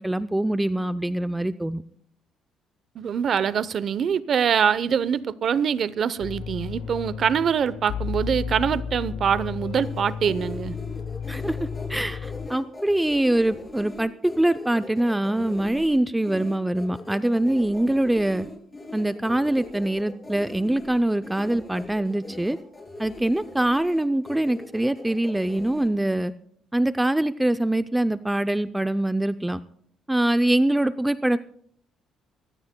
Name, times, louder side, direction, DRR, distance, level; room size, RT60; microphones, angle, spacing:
voice 1, 0.0-1.8 11.3-18.5 18.9-22.6 23.0-26.3 26.7-29.6 30.1-31.4, right 1 dB, 5° right, 0.4 m, -24 dB
voice 2, 2.9-10.8, right 7 dB, 50° right, 0.7 m, -24 dB
sound 1, 6.2-12.5, left 7 dB, 75° left, 0.7 m, -33 dB
sound 2, 9.8-25.9, left 2 dB, 20° left, 2.9 m, -40 dB
25.0 x 16.0 x 2.2 m
cardioid pair, 120°, 0 cm